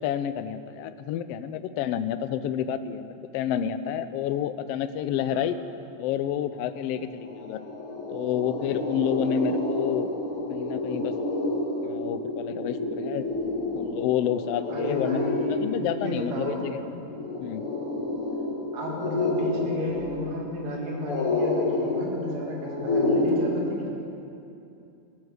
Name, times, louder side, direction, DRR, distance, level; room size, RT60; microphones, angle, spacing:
voice 1, 0.0-5.6 6.0-7.6 8.1-10.1 10.5-11.1 11.8-13.3 13.7-15.2 15.6-17.0 17.4-17.7, left 9 dB, 85° left, 12 dB, 1.4 m, -29 dB
sound 1, 6.7-6.8 7.1-23.3, left 2 dB, 50° left, 2.7 m, -29 dB
voice 2, 14.7-16.6 18.7-23.9, equal, 70° right, -1 dB, 3.3 m, -33 dB
16.0 x 10.0 x 6.4 m, 2.7 s
omnidirectional pair, 3.3 m